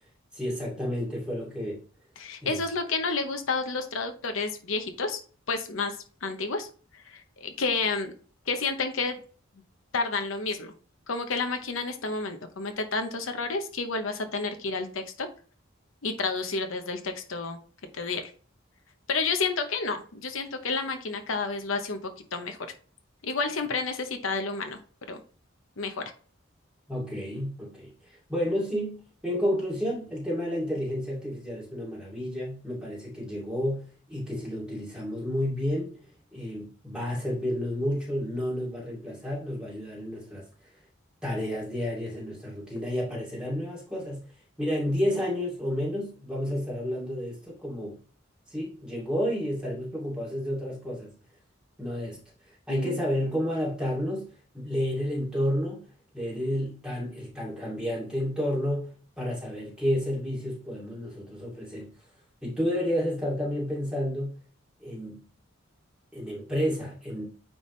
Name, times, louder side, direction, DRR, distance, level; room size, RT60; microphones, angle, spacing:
voice 1, 0.3-1.8 2.4-2.6 26.9-27.9 28.3-29.0 29.2-36.0 36.3-40.4 41.2-44.2 44.6-48.0 48.5-51.1 51.8-52.2 52.7-54.3 54.5-55.8 56.1-61.9 62.4-64.3 64.8-65.2 66.1-67.3, equal, 5° right, 2.5 m, -30 dB
voice 2, 2.2-5.2 5.5-6.7 6.9-8.1 8.5-9.2 9.9-10.7 11.1-15.3 16.0-17.6 17.9-18.3 19.1-22.6 23.2-24.8 25.1-25.2 25.8-26.1 52.7-53.0, left 4 dB, 70° left, 0.8 m, -30 dB
9.3 x 3.5 x 3.2 m
head